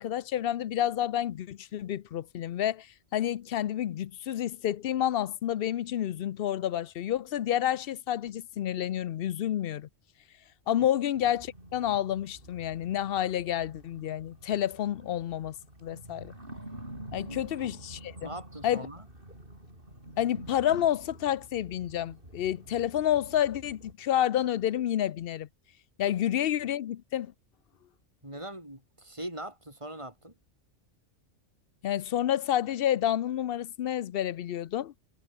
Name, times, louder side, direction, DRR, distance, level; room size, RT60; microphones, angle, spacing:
voice 1, 0.0-2.9 3.1-9.9 10.7-15.6 15.8-16.3 17.1-18.3 18.6-18.9 20.2-25.5 26.0-27.3 31.8-34.9, left 11 dB, 60° left, 0.7 m, -29 dB
sound 1, 11.1-23.9, right 1 dB, 45° right, 8.1 m, -48 dB
voice 2, 17.3-17.7 18.2-19.1 28.2-30.3, right 1 dB, 25° right, 6.7 m, -41 dB
omnidirectional pair, 1.2 m